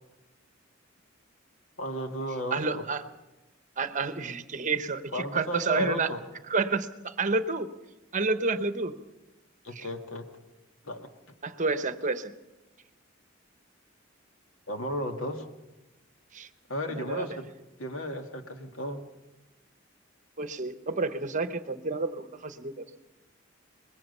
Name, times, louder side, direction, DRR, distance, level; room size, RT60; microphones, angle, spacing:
voice 1, 1.8-2.9 5.1-6.2 9.6-10.3 10.8-11.1 14.7-15.5 16.7-17.5 17.8-19.1, equal, 85° left, 5 dB, 1.9 m, -34 dB
voice 2, 2.5-3.0 3.8-6.1 6.5-7.7 8.1-8.9 9.7-9.9 11.4-12.3 16.3-16.5 16.9-17.3 20.4-22.8, right 4 dB, 40° right, 11 dB, 0.9 m, -29 dB
24.0 x 21.0 x 5.5 m, 1.0 s
head